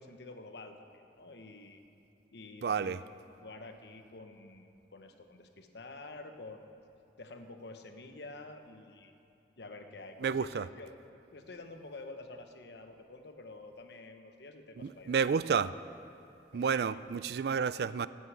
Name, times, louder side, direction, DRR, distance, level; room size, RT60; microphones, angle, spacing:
voice 1, 0.0-1.8 2.3-3.1 3.4-6.7 7.2-9.1 9.6-10.9 11.3-15.2 16.5-17.0, left 2 dB, 70° left, 6 dB, 1.0 m, -49 dB
voice 2, 2.6-3.0 10.2-10.7 14.8-15.7 16.5-18.1, right 6 dB, 60° right, 16 dB, 0.3 m, -30 dB
11.0 x 9.6 x 8.1 m, 2.8 s
head